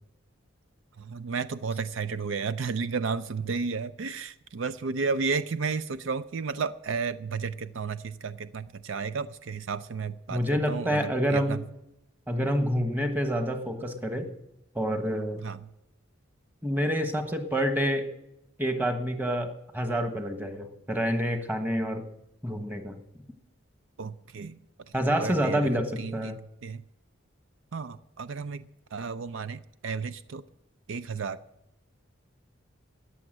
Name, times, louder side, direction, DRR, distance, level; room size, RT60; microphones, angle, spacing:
voice 1, 1.0-11.6 15.4-15.6 24.0-24.6 25.2-25.7 26.0-26.8 27.7-30.4 30.9-31.4, right 5 dB, 75° right, 13 dB, 0.5 m, -33 dB
voice 2, 10.3-11.6 12.3-14.3 14.7-15.4 16.6-18.1 18.6-22.0 22.4-23.0 24.9-26.4, equal, 10° right, 6 dB, 1.3 m, -28 dB
14.0 x 9.6 x 7.7 m, 0.85 s
head